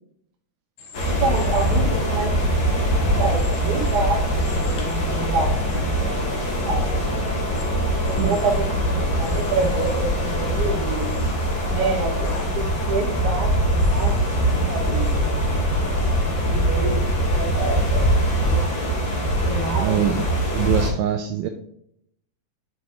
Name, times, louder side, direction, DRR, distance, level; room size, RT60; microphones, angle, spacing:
Human voice / Train, 0.8-1.8 3.2-4.0 4.4-5.0 5.7-5.8 7.6-7.7 8.1-8.6 9.2-10.0 11.0-11.3 12.2-12.5 13.8-14.2 15.0-15.2, left 4 dB, 65° left, 2.4 m, -43 dB
sound 1, 0.9-20.9, equal, 50° left, 1.3 m, -23 dB
voice 1, 1.1-6.0 6.3-7.1 8.0-11.1 11.7-14.2 14.5-15.3 15.8-17.0 17.3-18.9 19.4-20.2, right 3 dB, 60° right, -5 dB, 3.4 m, -28 dB
sound 2, 1.4-18.7, left 3 dB, 90° left, 4.3 m, -34 dB
voice 2, 19.8-21.5, right 9 dB, 85° right, 5 dB, 2.3 m, -24 dB
9.2 x 4.0 x 3.0 m, 0.73 s
omnidirectional pair, 4.1 m